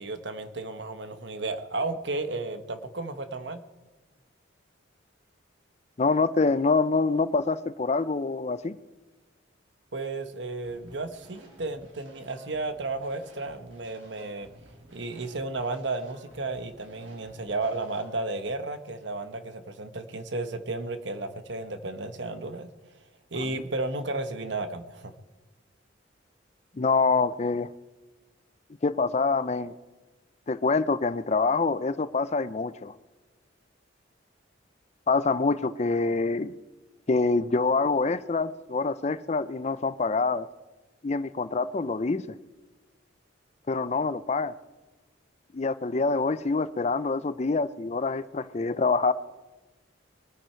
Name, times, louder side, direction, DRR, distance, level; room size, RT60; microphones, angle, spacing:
voice 1, 0.0-3.6 9.9-14.5 14.9-22.7 23.3-25.1, right 2 dB, 65° right, 1.1 m, -33 dB
voice 2, 6.0-8.8 23.4-23.5 26.7-27.7 28.8-29.7 30.5-32.9 35.1-36.5 37.1-40.5 41.0-42.4 43.7-44.5 45.5-49.1, left 4 dB, 35° left, 0.5 m, -26 dB
sound 1, 10.6-18.2, right 1 dB, 85° right, 3.5 m, -54 dB
22.5 x 9.4 x 4.5 m
head